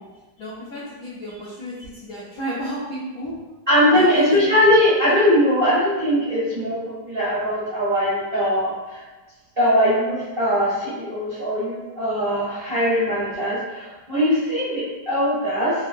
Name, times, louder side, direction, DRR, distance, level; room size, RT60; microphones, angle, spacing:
voice 1, 0.4-3.3 3.9-4.5, equal, 80° left, -7 dB, 0.8 m, -31 dB
voice 2, 3.7-9.0 9.6-15.7, equal, 45° right, -10 dB, 0.7 m, -20 dB
3.5 x 2.7 x 2.5 m, 1.2 s
omnidirectional pair, 2.3 m